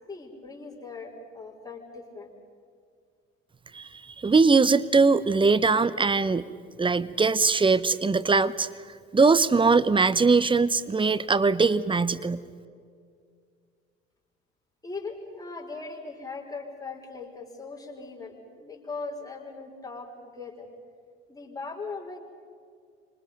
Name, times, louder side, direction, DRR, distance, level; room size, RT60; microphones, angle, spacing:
voice 1, 0.1-2.3 14.8-20.7 21.3-22.2, left 3 dB, 10° left, -1 dB, 5.2 m, -39 dB
voice 2, 4.2-6.5 6.8-8.7 9.1-12.4, right 4 dB, 15° right, 15 dB, 0.9 m, -21 dB
29.5 x 25.5 x 5.4 m, 2.2 s
figure-of-eight pair, 60°, 34 cm